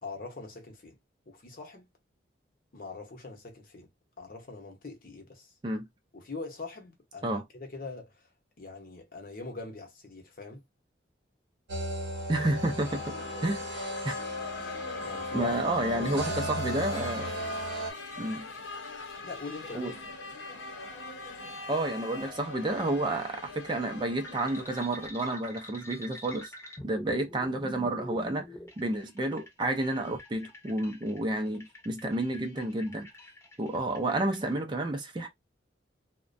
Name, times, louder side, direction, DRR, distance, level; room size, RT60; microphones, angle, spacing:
voice 1, 0.0-1.0 1.3-1.9 2.7-3.9 4.2-5.5 6.1-10.6 15.0-15.6 15.9-16.5 19.2-19.9, left 3 dB, 50° left, 0.8 m, -42 dB
sound 1, 11.7-17.9, equal, 80° right, 0.7 m, -35 dB
voice 2, 12.3-13.1 13.4-13.6 14.0-14.1 15.3-17.3 18.2-18.5 19.7-19.9 21.7-26.5 26.8-28.5 28.8-33.1 33.6-35.3, right 1 dB, 25° right, 0.4 m, -30 dB
sound 2, 12.8-25.1, left 3 dB, 90° left, 0.8 m, -42 dB
sound 3, 24.2-34.4, left 1 dB, 15° left, 0.7 m, -47 dB
2.3 x 2.1 x 2.5 m
head